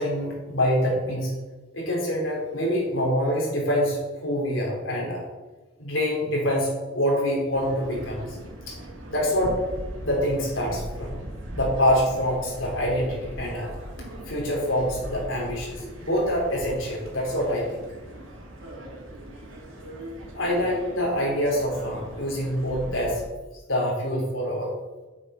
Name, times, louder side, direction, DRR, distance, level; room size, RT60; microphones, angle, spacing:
voice 1, 0.0-1.4 1.7-5.3 5.8-8.3 8.7-8.8 9.1-9.6 10.0-11.2 11.5-13.7 14.3-17.8 20.3-23.2 23.7-24.7, equal, 85° left, -2 dB, 3.7 m, -25 dB
sound 1, 7.5-23.3, right 1 dB, 85° right, 2.7 m, -39 dB
8.2 x 7.8 x 5.6 m, 1.2 s
head